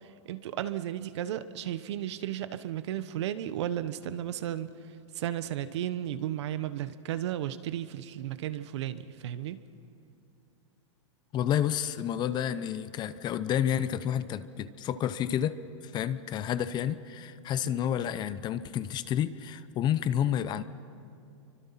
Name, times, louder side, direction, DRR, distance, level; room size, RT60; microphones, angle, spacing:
voice 1, 0.0-4.7 5.1-9.6 17.6-17.8, right 11 dB, 65° right, 13 dB, 1.1 m, -34 dB
voice 2, 11.3-15.6 15.8-20.6, left 10 dB, 30° left, 14 dB, 0.8 m, -30 dB
28.0 x 24.5 x 5.8 m, 2.7 s
hypercardioid pair, 135°, 16 cm